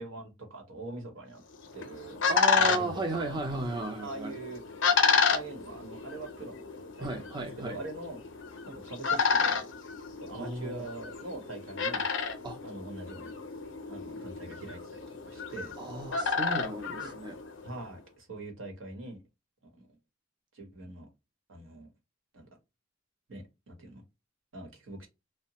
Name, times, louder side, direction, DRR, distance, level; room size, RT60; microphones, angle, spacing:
voice 1, 0.0-1.4 1.7-2.2 2.6-3.4 4.0-4.6 5.3-6.6 7.0-8.2 8.7-9.7 10.2-12.0 12.6-13.3 13.9-15.0 15.3-15.7 17.0-17.1 17.6-19.2 19.6-20.0 20.5-21.1 21.5-21.9 22.3-22.5 23.3-24.0 24.5-25.1, right 2 dB, 80° right, 1.1 m, -43 dB
sound 1, 1.5-17.8, left 5 dB, 65° left, 0.6 m, -31 dB
voice 2, 2.3-4.3 7.0-7.8 10.3-10.9 12.4-12.6 15.8-17.4, right 2 dB, 25° right, 0.5 m, -34 dB
2.8 x 2.1 x 2.8 m
head